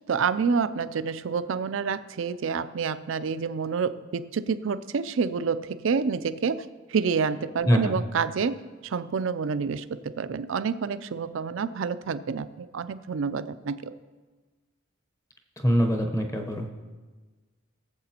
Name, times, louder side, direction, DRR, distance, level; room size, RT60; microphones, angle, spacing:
voice 1, 0.1-13.9, right 5 dB, 70° right, 14 dB, 0.4 m, -28 dB
voice 2, 7.7-8.0 15.6-16.7, equal, 15° left, 3 dB, 0.8 m, -23 dB
19.5 x 7.4 x 2.9 m, 1.4 s
head